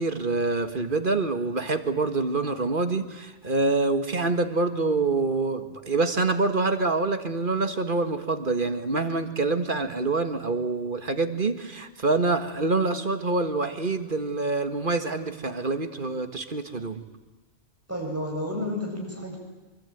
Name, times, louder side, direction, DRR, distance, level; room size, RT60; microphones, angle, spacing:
voice 1, 0.0-17.0, right 3 dB, 50° right, 8 dB, 1.9 m, -26 dB
voice 2, 17.9-19.4, left 1 dB, 15° right, -1 dB, 7.9 m, -31 dB
25.5 x 24.0 x 9.3 m, 1.2 s
omnidirectional pair, 1.1 m